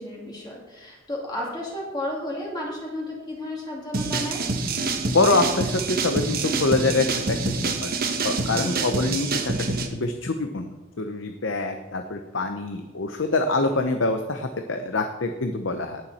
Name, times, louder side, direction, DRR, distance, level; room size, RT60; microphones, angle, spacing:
voice 1, 0.0-4.4 8.6-8.9, left 1 dB, 20° left, -3 dB, 2.6 m, -33 dB
sound 1, 3.9-9.9, right 3 dB, 45° right, 1.3 m, -26 dB
voice 2, 5.1-7.9 8.2-10.7 11.0-16.0, left 3 dB, 65° left, 6 dB, 0.8 m, -25 dB
18.5 x 7.2 x 4.3 m, 1.1 s
head